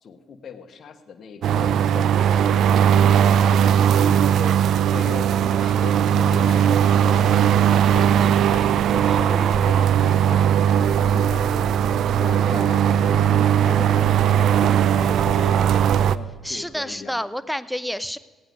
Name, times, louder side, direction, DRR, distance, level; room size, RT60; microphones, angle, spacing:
voice 1, 0.0-2.1 2.4-3.7 4.0-11.8 12.2-17.3, left 6 dB, 55° left, 6 dB, 1.2 m, -38 dB
sound 1, 1.4-16.2, right 9 dB, 70° right, 0.4 m, -18 dB
voice 2, 3.9-4.4 16.4-18.2, equal, ahead, 13 dB, 0.6 m, -30 dB
16.5 x 9.0 x 5.2 m, 1.5 s
supercardioid pair, 65°, 0 cm